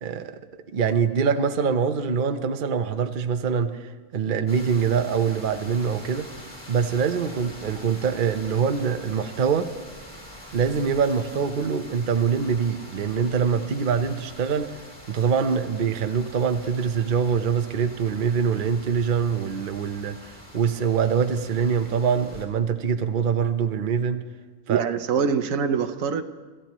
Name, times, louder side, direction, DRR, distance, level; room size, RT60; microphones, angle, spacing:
voice 1, 0.0-0.4 0.7-3.9 4.1-6.3 6.7-9.7 10.5-14.7 15.1-24.2 24.7-24.8, right 6 dB, 45° right, 8 dB, 0.8 m, -24 dB
sound 1, 4.5-22.5, equal, 15° left, 3.4 m, -44 dB
voice 2, 24.7-26.2, right 6 dB, 75° right, 10 dB, 1.1 m, -24 dB
26.5 x 14.0 x 3.0 m, 1.4 s
omnidirectional pair, 1.4 m